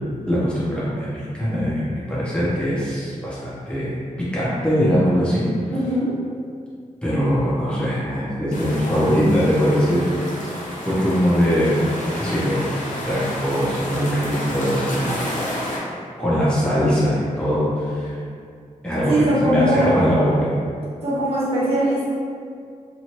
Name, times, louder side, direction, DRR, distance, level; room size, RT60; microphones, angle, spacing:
voice 1, 0.3-3.9 4.3-5.5 7.0-10.0 10.8-11.7 12.2-12.6 13.1-15.2 16.2-18.2 18.8-20.5, equal, 5° left, -10 dB, 0.7 m, -21 dB
voice 2, 5.7-6.1 19.1-19.9 21.0-22.1, right 1 dB, 45° right, -8 dB, 0.7 m, -20 dB
sound 1, 8.5-15.8, left 1 dB, 70° left, 0.6 m, -30 dB
2.8 x 2.3 x 2.9 m, 2.3 s
wide cardioid pair, 170°, 13 cm